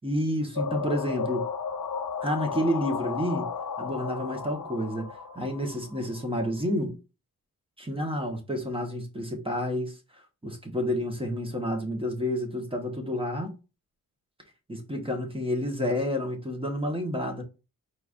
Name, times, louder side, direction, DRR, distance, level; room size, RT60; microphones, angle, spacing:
voice 1, 0.0-1.4 2.2-3.5 3.8-5.1 5.3-7.0 7.8-13.5 14.7-17.4, equal, 15° right, 1.5 m, -30 dB
sound 1, 0.6-6.3, left 6 dB, 55° left, 0.8 m, -34 dB
4.5 x 3.7 x 2.7 m
cardioid pair, 65°, 37 cm